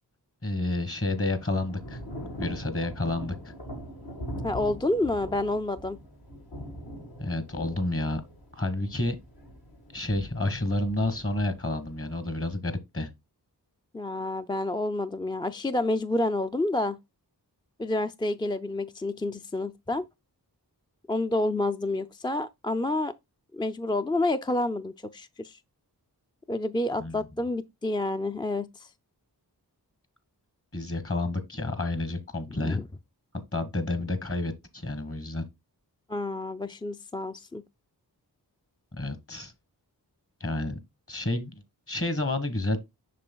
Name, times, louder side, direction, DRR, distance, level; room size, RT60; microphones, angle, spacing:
voice 1, 0.4-2.0 2.4-3.5 7.2-8.2 8.5-9.2 9.9-13.1 27.0-27.2 30.7-32.8 33.5-35.4 39.0-39.5 40.4-40.8 41.1-42.8, left 2 dB, 35° left, 1.4 m, -30 dB
Thunder / Rain, 0.7-12.6, equal, 70° left, 1.9 m, -42 dB
voice 2, 4.4-6.0 13.9-17.0 17.8-20.1 21.1-23.1 23.5-25.6 26.5-28.9 32.5-32.8 36.1-37.6, left 2 dB, 15° left, 0.3 m, -29 dB
7.5 x 6.1 x 2.2 m
wide cardioid pair, 70°, 40 cm